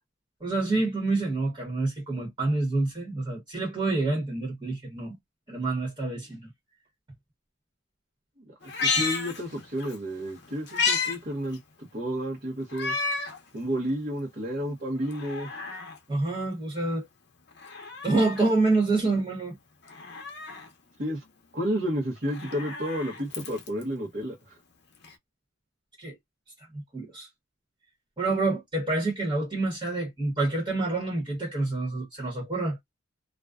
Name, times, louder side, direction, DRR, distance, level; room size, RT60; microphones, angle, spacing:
voice 1, 0.4-5.1 5.5-6.4 16.1-17.1 18.0-19.6 26.0-26.2 26.7-27.3 28.2-32.8, right 2 dB, 25° right, 1.0 m, -27 dB
Meow, 8.6-10.0 10.3-11.2 11.5-11.6 12.7-13.4 13.9-14.0 15.0-16.0 17.5-18.5 19.9-20.7 22.2-23.8 25.0-25.1, left 4 dB, 55° left, 0.6 m, -31 dB
voice 2, 8.8-13.0 13.5-15.8 21.0-21.2 21.5-24.6, equal, 50° right, 0.8 m, -31 dB
2.4 x 2.2 x 2.3 m
head